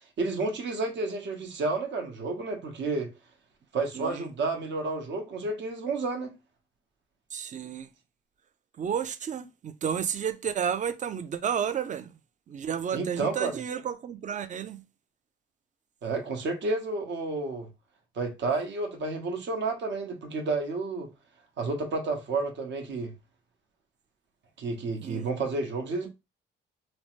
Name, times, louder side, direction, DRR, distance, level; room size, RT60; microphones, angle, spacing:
voice 1, 0.2-3.1 3.7-6.3 12.9-13.6 16.0-17.7 18.2-21.1 21.6-23.1 24.6-26.1, right 3 dB, 65° right, 1.0 m, -31 dB
voice 2, 3.9-4.3 7.3-7.9 8.8-12.1 12.5-14.8 25.0-25.3, right 8 dB, 40° right, 0.4 m, -32 dB
3.0 x 2.1 x 3.0 m
cardioid pair, 90°, 20 cm